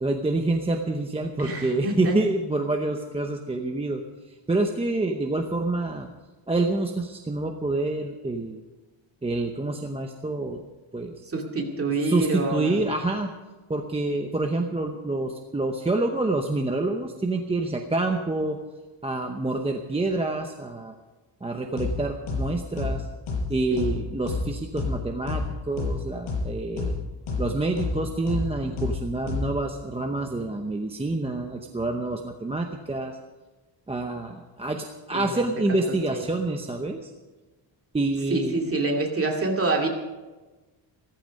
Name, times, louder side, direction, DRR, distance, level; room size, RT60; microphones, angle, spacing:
voice 1, 0.0-4.0 4.5-6.1 6.5-8.6 9.2-10.6 10.9-11.2 12.0-13.3 13.7-18.6 19.0-20.9 21.4-23.1 23.5-26.9 27.4-33.2 33.9-37.1 37.9-38.6, right 2 dB, 10° right, 3 dB, 0.7 m, -27 dB
voice 2, 1.4-2.1 11.3-12.7 23.7-23.9 35.1-35.4 36.1-36.2 38.3-39.9, right 2 dB, 25° right, 0 dB, 2.3 m, -27 dB
sound 1, 21.8-21.9 22.3-22.4 22.8-22.9 23.3-23.4 23.8-23.9 24.3-24.4 24.8-24.9 25.3-25.4 25.8-25.9 26.3-26.4 26.8-26.9 27.3-27.4 27.8-27.9 28.3-28.4 28.8-28.9 29.3-29.4, left 3 dB, 75° left, 5.6 m, -27 dB
15.5 x 14.5 x 5.2 m, 1.2 s
wide cardioid pair, 175°, 49 cm